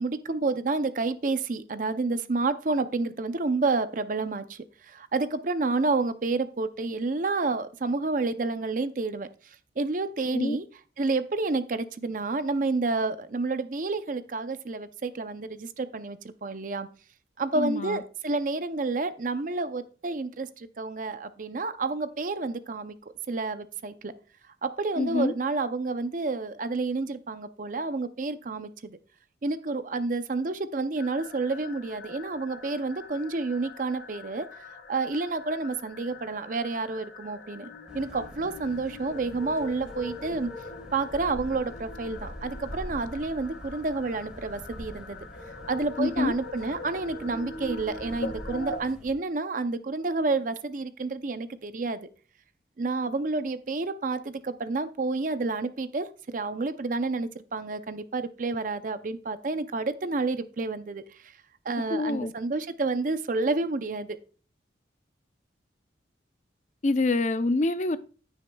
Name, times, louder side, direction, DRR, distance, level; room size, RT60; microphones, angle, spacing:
voice 1, 0.0-4.6 4.9-9.3 9.8-10.6 11.0-16.9 17.4-23.0 23.3-24.1 24.6-29.0 29.4-34.5 34.9-37.7 37.9-40.5 40.9-45.2 45.7-52.0 52.8-56.1 56.3-61.0 61.6-64.2, right 3 dB, 45° right, 0.5 m, -29 dB
voice 2, 17.5-18.0 25.0-25.3 46.0-46.3 61.9-62.3 66.8-68.0, left 2 dB, 40° left, 0.5 m, -26 dB
sound 1, 31.0-48.8, left 2 dB, 80° left, 1.7 m, -42 dB
sound 2, 37.9-49.1, equal, 5° right, 1.7 m, -45 dB
15.0 x 6.4 x 2.3 m
head